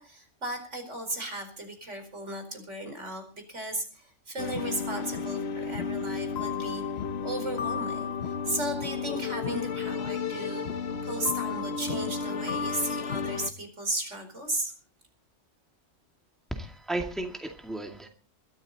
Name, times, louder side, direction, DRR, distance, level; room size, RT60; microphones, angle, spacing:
voice 1, 0.0-6.8 7.2-10.6 11.0-14.7, right 2 dB, 70° right, 6 dB, 5.0 m, -35 dB
sound 1, 4.4-13.5, left 6 dB, 60° left, 1.1 m, -32 dB
voice 2, 16.5-18.1, right 2 dB, ahead, 3 dB, 2.2 m, -34 dB
21.5 x 13.5 x 4.1 m, 0.37 s
omnidirectional pair, 1.3 m